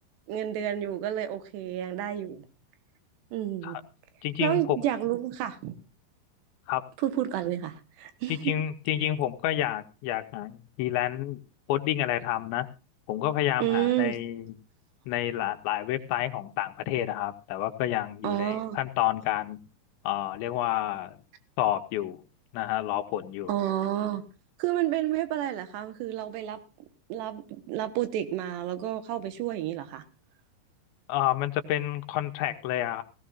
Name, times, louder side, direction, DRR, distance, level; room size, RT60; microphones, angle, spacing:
voice 1, 0.3-2.4 3.3-3.8 4.4-5.7 7.0-8.5 13.6-14.2 18.2-18.8 23.5-24.2 24.6-26.6 27.1-27.4 27.7-30.0, right 12 dB, 75° right, 3.1 m, -30 dB
voice 2, 4.2-4.8 6.7-6.8 8.3-11.4 11.7-12.7 13.1-14.5 15.1-19.6 20.0-21.2 21.6-22.2 22.5-23.5 31.1-33.0, left 13 dB, 85° left, 3.2 m, -29 dB
17.0 x 16.5 x 2.4 m
omnidirectional pair, 5.2 m